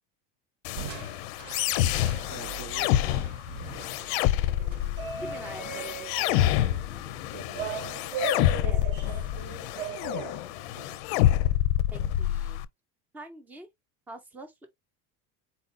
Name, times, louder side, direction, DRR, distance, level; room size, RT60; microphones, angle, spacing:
sound 1, 0.6-12.6, left 13 dB, 60° left, 0.5 m, -27 dB
Crushing, 0.8-6.2, right 7 dB, 50° right, 0.9 m, -44 dB
voice 1, 2.2-3.5 7.0-8.3 10.7-11.5, right 3 dB, 75° right, 2.7 m, -47 dB
sound 2, 3.8-10.8, right 8 dB, 30° right, 0.7 m, -38 dB
voice 2, 5.2-6.4 8.6-9.3 11.9-12.6 13.1-13.7 14.1-14.7, right 1 dB, 5° right, 0.3 m, -45 dB
4.3 x 2.3 x 3.8 m
cardioid pair, 175°, 36 cm